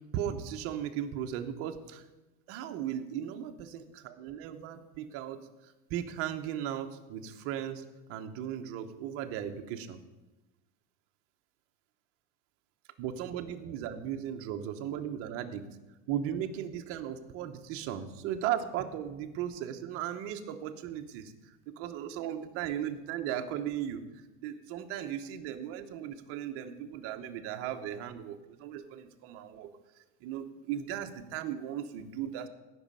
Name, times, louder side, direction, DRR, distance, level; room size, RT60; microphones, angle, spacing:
voice 1, 0.1-2.0 2.5-5.4 5.9-7.8 8.1-10.0 13.0-15.6 16.1-21.3 21.7-24.0 24.4-29.7 30.2-32.5, right 10 dB, 40° right, 6 dB, 0.9 m, -36 dB
16.5 x 6.3 x 5.5 m, 1.1 s
supercardioid pair, 160°, 34 cm